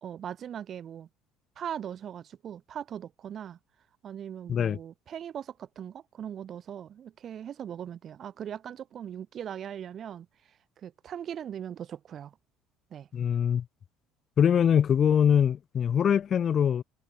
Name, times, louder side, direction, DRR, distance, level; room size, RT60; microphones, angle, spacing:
voice 1, 0.0-1.1 1.6-3.6 4.0-12.4 12.9-13.1, right 9 dB, 50° right, 1.9 m, -40 dB
voice 2, 13.1-13.6 14.4-16.8, left 8 dB, 45° left, 0.7 m, -23 dB
supercardioid pair, 80°, 0 cm